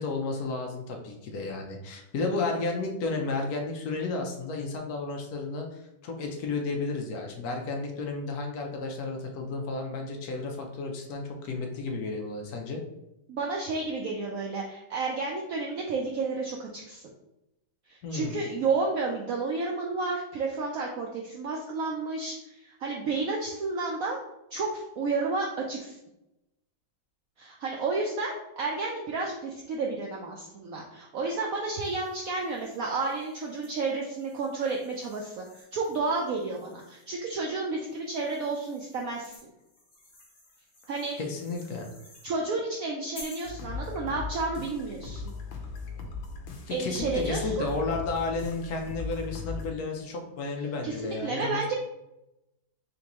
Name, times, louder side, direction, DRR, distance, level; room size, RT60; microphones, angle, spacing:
voice 1, 0.0-12.8 18.0-18.4 41.2-41.9 46.7-51.7, left 3 dB, 65° left, 2 dB, 1.0 m, -32 dB
voice 2, 13.3-17.0 17.9-24.2 24.5-26.0 27.4-39.3 40.9-41.1 42.2-45.3 46.7-47.7 50.8-51.7, right 3 dB, 80° right, -1 dB, 0.7 m, -31 dB
sound 1, 31.6-37.2 37.8-42.3 43.1-43.6, left 2 dB, 45° left, 1.2 m, -53 dB
sound 2, 43.4-49.7, left 4 dB, 90° left, 1.4 m, -38 dB
3.9 x 3.5 x 2.9 m, 0.89 s
omnidirectional pair, 2.0 m